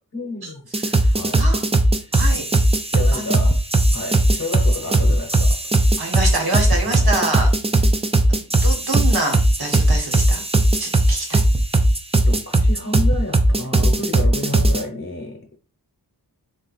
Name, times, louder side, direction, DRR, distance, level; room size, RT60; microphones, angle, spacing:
voice 1, 0.1-0.6 1.1-1.5 2.0-2.1 2.9-3.6 3.9-5.9 6.8-7.2 12.2-15.6, left 2 dB, 35° left, 0.9 m, -31 dB
sound 1, 0.7-14.8, right 1 dB, 15° right, 0.4 m, -17 dB
voice 2, 2.1-2.4 3.1-3.5 6.0-7.5 8.3-10.4 10.8-11.4, right 2 dB, 70° right, 1.4 m, -26 dB
3.5 x 2.5 x 4.0 m
wide cardioid pair, 85°, 39 cm